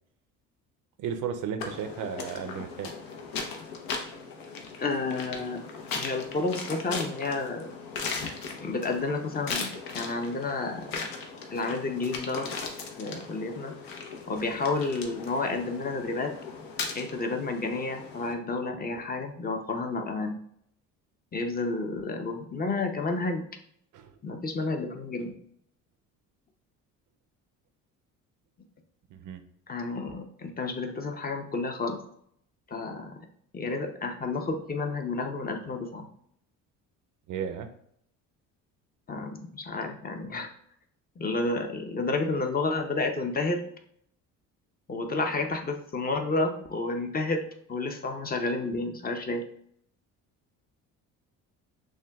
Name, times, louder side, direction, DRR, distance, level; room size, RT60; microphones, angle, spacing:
voice 1, 1.0-2.9 23.9-24.2 29.1-29.4 37.3-37.7, right 7 dB, 60° right, 8 dB, 0.6 m, -34 dB
sound 1, 1.6-18.3, left 4 dB, 80° left, 0.8 m, -38 dB
voice 2, 4.8-5.6 5.9-7.7 8.6-11.0 11.5-12.5 13.0-13.7 14.3-16.3 16.9-20.4 21.3-23.4 24.2-25.3 29.7-32.0 32.7-33.1 33.5-36.1 39.1-40.5 41.2-43.6 44.9-47.4 47.7-49.4, left 3 dB, 25° left, 4 dB, 0.6 m, -30 dB
6.1 x 2.2 x 2.3 m, 0.68 s
supercardioid pair, 85°, 35 cm